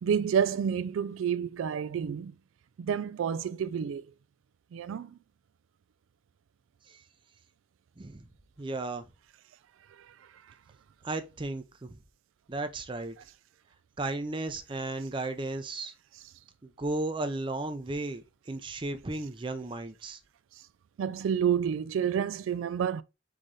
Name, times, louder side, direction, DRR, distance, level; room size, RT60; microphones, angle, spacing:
voice 1, 0.0-2.3 2.8-4.1 4.7-5.2 9.9-10.5 20.5-20.6 21.0-23.0, right 8 dB, 85° right, 0.3 m, -30 dB
voice 2, 8.0-8.3 8.6-9.1 11.0-12.0 12.5-13.2 14.0-15.9 16.6-20.2, right 2 dB, 25° right, 0.5 m, -34 dB
4.0 x 3.8 x 3.1 m
head